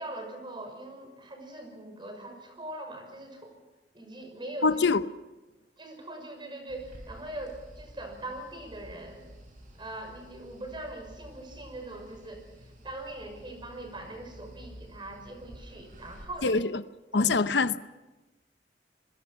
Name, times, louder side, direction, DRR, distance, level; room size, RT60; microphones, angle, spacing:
voice 1, 0.0-3.5 3.9-4.8 5.8-9.2 9.8-12.4 12.8-16.6 17.2-17.3, right 1 dB, 30° right, 6.0 m, -41 dB
voice 2, 4.6-5.0 16.4-16.8 17.1-17.9, left 4 dB, 80° left, 0.8 m, -24 dB
sound 1, 6.7-16.2, equal, 50° right, 7.3 m, -50 dB
27.5 x 22.0 x 5.9 m
head